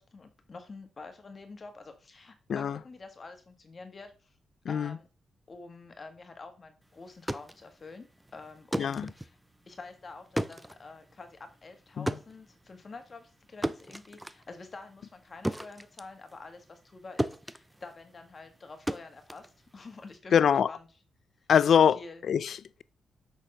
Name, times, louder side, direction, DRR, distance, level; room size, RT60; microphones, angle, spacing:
voice 1, 0.0-4.3 4.7-5.1 5.5-8.1 8.3-9.4 9.7-20.9 21.9-22.2, left 3 dB, 35° left, 1.6 m, -47 dB
voice 2, 4.7-5.0 8.8-9.1 12.0-12.1 20.3-20.7 21.5-22.0 22.3-22.8, left 8 dB, 60° left, 0.4 m, -24 dB
sound 1, 7.0-16.9 17.2-20.2, right 1 dB, 5° right, 0.5 m, -37 dB
6.4 x 6.3 x 5.5 m
wide cardioid pair, 140°, 0 cm